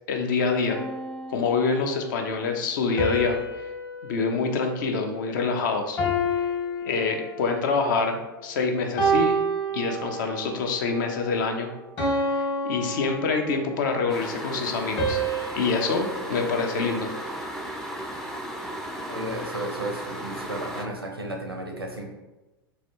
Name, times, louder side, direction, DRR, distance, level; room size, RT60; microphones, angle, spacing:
voice 1, 0.1-0.8 1.3-3.4 4.0-6.0 6.9-9.4 9.7-11.7 12.3-15.2 15.5-17.1, left 4 dB, 55° left, 4 dB, 0.5 m, -26 dB
sound 1, 0.7-2.0 3.0-5.5 6.0-7.7 8.3-8.5 9.0-10.5 11.0-11.3 12.0-13.9 15.0-17.4, right 1 dB, 35° left, 1.1 m, -29 dB
sound 2, 14.1-20.9, right 1 dB, 5° left, 0.4 m, -35 dB
voice 2, 19.1-22.1, right 1 dB, 90° right, 1 dB, 0.6 m, -33 dB
4.0 x 2.3 x 2.9 m, 1.0 s
figure-of-eight pair, 90°, 12 cm